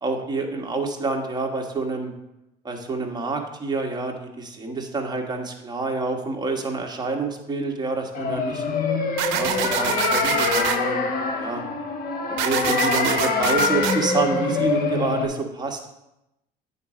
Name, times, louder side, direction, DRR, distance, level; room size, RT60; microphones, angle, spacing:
voice 1, 0.0-2.1 2.6-8.6 9.3-11.1 11.3-11.6 12.3-15.9, right 3 dB, 20° right, 2 dB, 1.4 m, -28 dB
sound 1, 8.1-15.3, left 4 dB, 55° left, 1.2 m, -24 dB
sound 2, 9.2-10.8 12.4-13.9, right 10 dB, 80° right, 0.6 m, -25 dB
8.7 x 4.1 x 4.9 m, 0.88 s
supercardioid pair, 85°, 18 cm